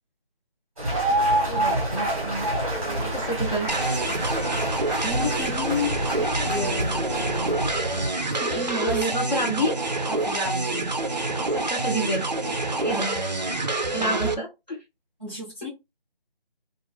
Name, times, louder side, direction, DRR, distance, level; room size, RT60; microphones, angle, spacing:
sound 1, 0.8-8.1, right 1 dB, 15° right, 0.9 m, -27 dB
voice 1, 1.5-2.5 3.0-3.7 8.7-9.7 11.4-13.1 13.9-14.8, right 1 dB, 45° left, 0.8 m, -29 dB
sound 2, 3.7-14.3, right 2 dB, 50° right, 0.4 m, -27 dB
voice 2, 5.0-7.6 8.3-9.1 9.4-9.7 10.1-10.9 12.9-13.6 14.0-14.2 15.2-15.7, left 3 dB, 10° left, 1.2 m, -32 dB
3.0 x 2.4 x 2.3 m
figure-of-eight pair, 170°, 29 cm